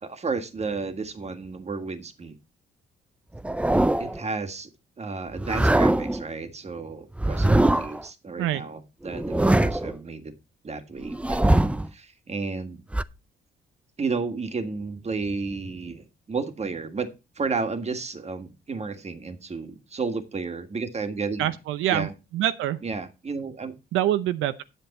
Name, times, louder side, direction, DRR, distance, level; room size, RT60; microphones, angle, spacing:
voice 1, 0.0-2.4 4.0-4.7 5.0-10.3 10.6-12.8 14.0-21.5 21.9-22.1 22.8-23.8, right 4 dB, 35° right, 1.7 m, -32 dB
sound 1, 3.3-4.2 5.3-6.2 7.2-8.0 9.0-10.0 11.0-11.9 12.9-13.0, right 1 dB, 5° right, 0.5 m, -22 dB
voice 2, 21.4-22.8 23.9-24.6, right 12 dB, 90° right, 0.7 m, -25 dB
8.9 x 8.2 x 4.2 m
cardioid pair, 90°, 20 cm